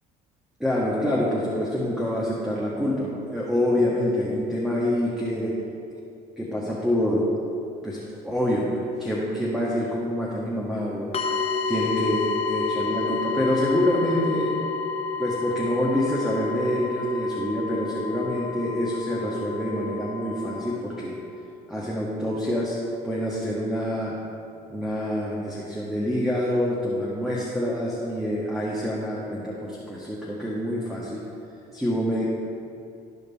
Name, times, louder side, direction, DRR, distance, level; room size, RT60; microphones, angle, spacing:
voice 1, 0.6-5.5 6.4-7.3 7.8-8.7 9.0-11.1 11.7-14.5 15.2-21.1 21.7-22.8 23.0-24.1 24.7-31.2 31.7-32.3, left 1 dB, ahead, -6 dB, 1.8 m, -26 dB
sound 1, 11.1-20.8, left 4 dB, 30° left, 1.2 m, -30 dB
13.5 x 5.1 x 4.3 m, 2.6 s
hypercardioid pair, 60°, 20 cm